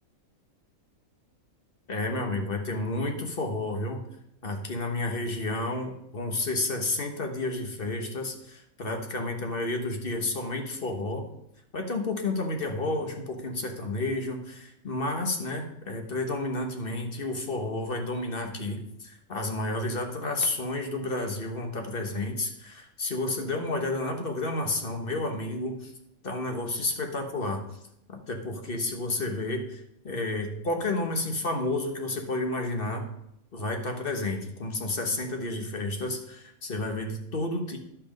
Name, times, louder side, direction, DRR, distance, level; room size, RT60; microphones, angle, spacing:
voice 1, 1.9-4.0 4.4-11.2 11.7-25.9 26.2-27.6 28.1-33.1 33.5-37.8, left 2 dB, 40° left, 3 dB, 1.3 m, -31 dB
11.0 x 5.9 x 5.2 m, 0.78 s
omnidirectional pair, 1.5 m